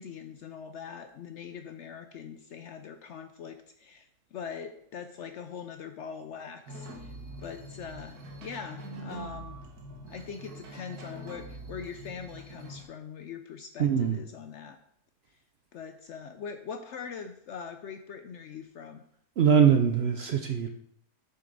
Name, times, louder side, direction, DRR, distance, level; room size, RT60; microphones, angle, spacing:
voice 1, 0.0-7.1 7.4-9.6 10.1-14.8 15.7-19.0, left 6 dB, 65° left, 8 dB, 0.7 m, -42 dB
sound 1, 6.7-12.8, right 1 dB, 85° right, 1.9 m, -44 dB
voice 2, 13.8-14.2 19.4-20.7, right 8 dB, 60° right, 5 dB, 0.7 m, -22 dB
6.7 x 6.6 x 4.0 m, 0.69 s
omnidirectional pair, 1.6 m